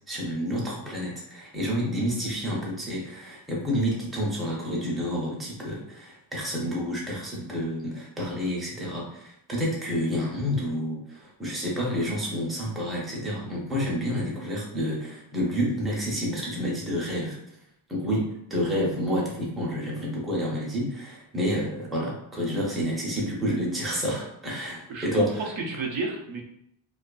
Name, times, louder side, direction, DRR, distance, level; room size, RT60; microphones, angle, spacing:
voice 1, 0.0-17.4 17.9-25.4, equal, ahead, -5 dB, 0.5 m, -29 dB
voice 2, 24.9-26.4, right 3 dB, 70° right, 0 dB, 0.6 m, -31 dB
2.4 x 2.3 x 2.3 m, 0.76 s
wide cardioid pair, 145°, 49 cm